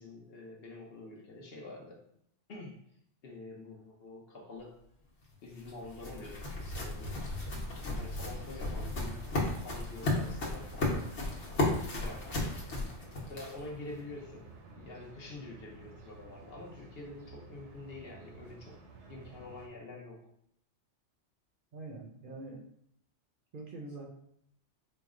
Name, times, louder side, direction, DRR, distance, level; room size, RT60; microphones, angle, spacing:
voice 1, 0.0-2.0 2.5-2.8 3.2-4.8 5.4-7.3 8.0-11.1 11.9-12.6 13.3-18.8 19.1-20.3, left 2 dB, 60° left, -1 dB, 1.0 m, -47 dB
sound 1, 5.2-13.8, left 2 dB, 75° left, 1.2 m, -35 dB
sound 2, 8.3-19.7, right 3 dB, 80° right, 1.0 m, -53 dB
voice 2, 21.7-22.6 23.5-24.1, right 2 dB, 55° right, 0 dB, 0.7 m, -44 dB
4.5 x 2.1 x 3.6 m, 0.70 s
omnidirectional pair, 1.2 m